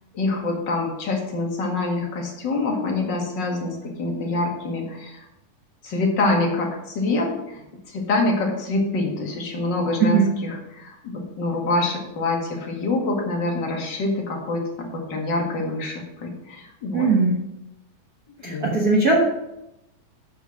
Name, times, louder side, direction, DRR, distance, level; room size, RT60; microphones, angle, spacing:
voice 1, 0.1-5.3 5.8-7.6 7.9-17.1 18.4-18.7, left 2 dB, 40° left, 0 dB, 2.1 m, -25 dB
voice 2, 16.9-17.4 18.4-19.2, right 4 dB, 70° right, -2 dB, 0.8 m, -19 dB
8.2 x 7.1 x 6.1 m, 0.88 s
omnidirectional pair, 4.0 m